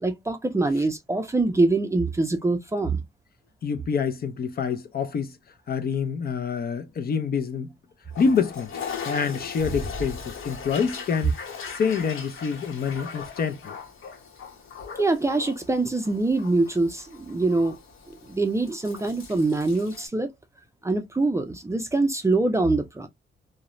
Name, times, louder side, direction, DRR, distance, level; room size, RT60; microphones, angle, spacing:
voice 1, 0.0-3.0 15.0-17.8 18.1-20.3 20.8-23.1, right 2 dB, 15° right, 0.4 m, -24 dB
voice 2, 3.6-5.3 5.7-7.7 8.2-8.7 9.0-11.4 11.7-13.8, left 6 dB, 50° left, 0.5 m, -26 dB
Toilet flush, 8.1-20.1, left 5 dB, 80° left, 0.8 m, -38 dB
2.4 x 2.0 x 2.9 m
wide cardioid pair, 140°, 21 cm